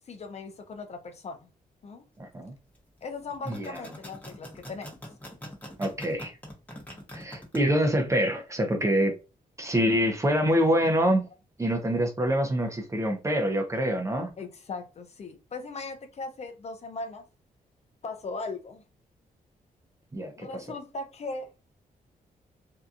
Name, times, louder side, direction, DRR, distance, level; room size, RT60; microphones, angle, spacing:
voice 1, 0.1-1.5 1.8-2.1 3.0-5.0 14.4-17.3 18.0-18.8 20.4-21.5, left 3 dB, 45° left, 0.5 m, -38 dB
voice 2, 2.2-2.5 3.5-3.8 5.8-6.3 7.1-9.1 9.6-11.2 11.6-14.3 20.1-20.5, equal, 20° right, 0.6 m, -25 dB
sound 1, 3.3-7.6, left 1 dB, 10° left, 1.0 m, -42 dB
2.7 x 2.3 x 2.4 m
cardioid pair, 105°, 15 cm